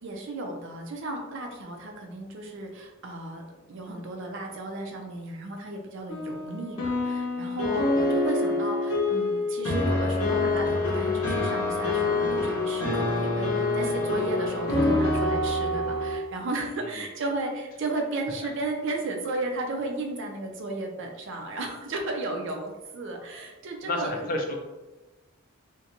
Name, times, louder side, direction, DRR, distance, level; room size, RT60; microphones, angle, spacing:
voice 1, 0.0-24.3, right 2 dB, 60° right, 2 dB, 0.5 m, -34 dB
sound 1, 6.1-16.2, left 2 dB, 90° left, 0.7 m, -26 dB
voice 2, 23.8-24.6, left 1 dB, 40° left, 2 dB, 0.4 m, -30 dB
2.5 x 2.2 x 2.8 m, 1.1 s
head